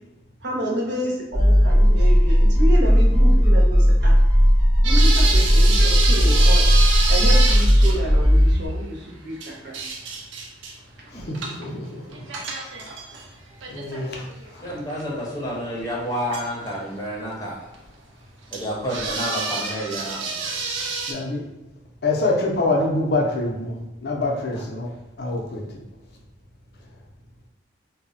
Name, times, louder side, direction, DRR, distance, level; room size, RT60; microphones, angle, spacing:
voice 1, 0.4-4.1 4.8-6.7 7.1-9.8, equal, 70° right, -4 dB, 0.8 m, -29 dB
sound 1, 1.3-8.7, equal, 25° right, 0.7 m, -16 dB
sound 2, 4.8-8.0 9.4-10.7 11.3-11.7 12.1-13.3 13.6-15.0 15.5-15.6 16.3-16.7 17.7-17.8 18.5-18.6 18.9-21.1, right 4 dB, 85° right, 0.5 m, -27 dB
voice 2, 11.1-11.9 13.7-14.2 21.1-21.4 22.0-24.9 25.2-25.6, left 2 dB, 60° left, -1 dB, 0.5 m, -25 dB
voice 3, 14.6-17.6 18.5-20.4 24.5-24.6, equal, 20° left, -5 dB, 0.7 m, -30 dB
2.1 x 2.0 x 3.7 m, 0.96 s
head